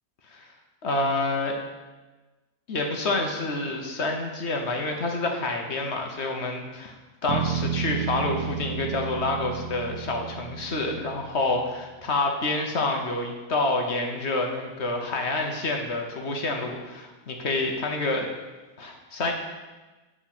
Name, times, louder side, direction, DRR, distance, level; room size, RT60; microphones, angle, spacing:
voice 1, 0.8-1.6 2.7-6.9 7.2-18.3 18.8-19.3, left 2 dB, 50° left, 2 dB, 1.1 m, -28 dB
Bass guitar, 7.3-11.6, right 8 dB, 85° right, 1.4 m, -32 dB
8.6 x 4.6 x 6.0 m, 1.2 s
omnidirectional pair, 1.7 m